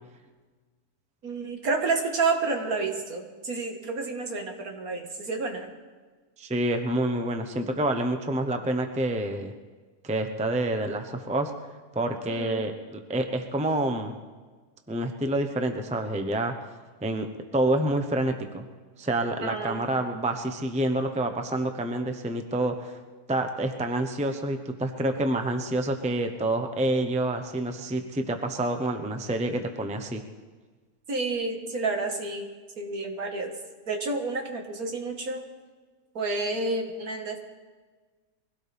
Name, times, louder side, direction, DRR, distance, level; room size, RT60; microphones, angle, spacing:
voice 1, 1.2-5.7 12.3-12.7 19.4-19.9 31.1-32.5 32.8-33.6 33.9-35.5 36.1-37.4, right 3 dB, 65° right, 3 dB, 2.1 m, -30 dB
voice 2, 6.4-9.5 10.0-11.5 11.9-14.1 14.9-16.5 17.0-17.3 17.5-18.6 19.0-23.0 23.3-30.2, right 1 dB, 5° right, 6 dB, 0.7 m, -28 dB
23.0 x 16.5 x 3.5 m, 1.4 s
omnidirectional pair, 1.7 m